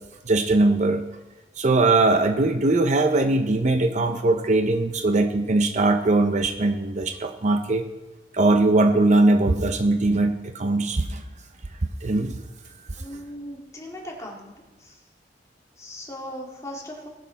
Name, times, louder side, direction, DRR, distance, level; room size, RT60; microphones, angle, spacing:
voice 1, 0.3-1.0 1.6-7.8 8.3-11.2 12.0-12.3, right 2 dB, 45° right, 6 dB, 0.7 m, -20 dB
voice 2, 13.0-14.5 14.8-15.0 15.8-17.1, equal, 20° left, -2 dB, 2.4 m, -38 dB
19.0 x 6.6 x 4.1 m, 1.1 s
head